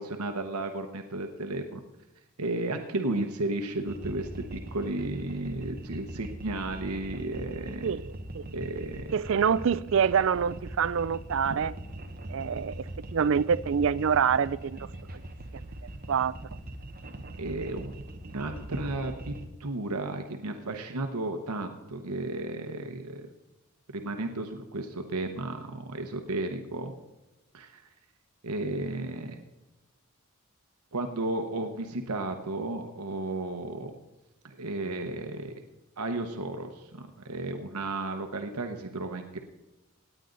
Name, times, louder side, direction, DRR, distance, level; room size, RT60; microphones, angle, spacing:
voice 1, 0.0-1.8 2.4-7.9 8.5-9.1 11.5-11.6 17.3-18.0 18.3-19.3 19.6-23.3 23.9-26.9 27.5-27.8 28.4-29.4 30.9-33.9 34.4-35.5 36.0-39.4, right 2 dB, 85° right, 1.0 m, -33 dB
sound 1, 3.9-19.5, right 1 dB, 40° right, 1.0 m, -41 dB
voice 2, 9.1-11.7 12.3-12.7 13.1-14.8 16.1-16.3, right 7 dB, 60° right, 0.4 m, -25 dB
18.0 x 9.3 x 3.9 m
head